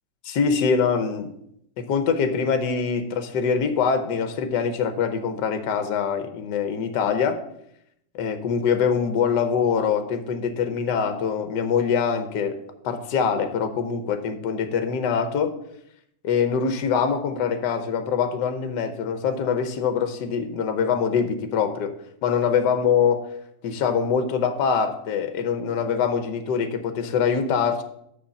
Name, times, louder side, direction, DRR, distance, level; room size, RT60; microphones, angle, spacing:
voice 1, 0.2-1.3 1.8-7.4 8.1-15.5 16.2-22.0 22.2-23.3 23.6-27.8, left 6 dB, 70° left, 8 dB, 1.4 m, -24 dB
6.5 x 5.7 x 7.0 m, 0.74 s
omnidirectional pair, 1.9 m